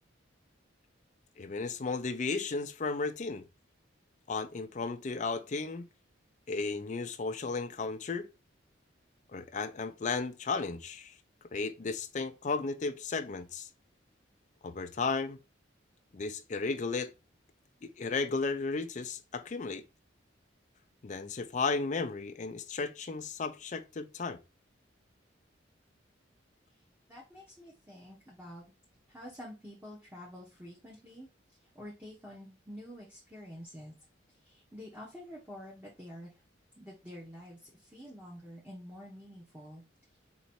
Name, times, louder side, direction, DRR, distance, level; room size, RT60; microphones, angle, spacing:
voice 1, 1.4-3.4 4.3-5.9 6.5-8.3 9.3-11.1 11.5-13.7 14.6-15.4 16.1-17.1 17.8-19.8 21.0-24.4, left 4 dB, 40° left, 0.4 m, -34 dB
voice 2, 27.1-28.6 29.1-31.3 31.7-33.9 34.4-36.3 36.7-39.8, equal, 10° right, 1.1 m, -48 dB
3.9 x 3.1 x 4.2 m
head